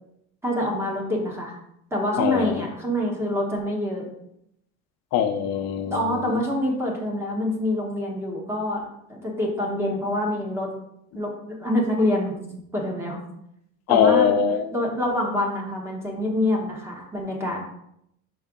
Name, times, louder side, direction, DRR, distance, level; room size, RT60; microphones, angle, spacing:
voice 1, 0.4-1.6 1.9-4.0 5.9-10.7 11.1-11.3 11.6-12.3 12.7-13.2 13.9-14.3 14.7-17.6, left 1 dB, 10° right, -1 dB, 1.2 m, -26 dB
voice 2, 2.2-2.6 5.1-6.4 11.2-11.3 13.9-14.7, left 8 dB, 60° left, 7 dB, 0.7 m, -22 dB
5.4 x 5.1 x 3.7 m, 0.76 s
cardioid pair, 165°, 30 cm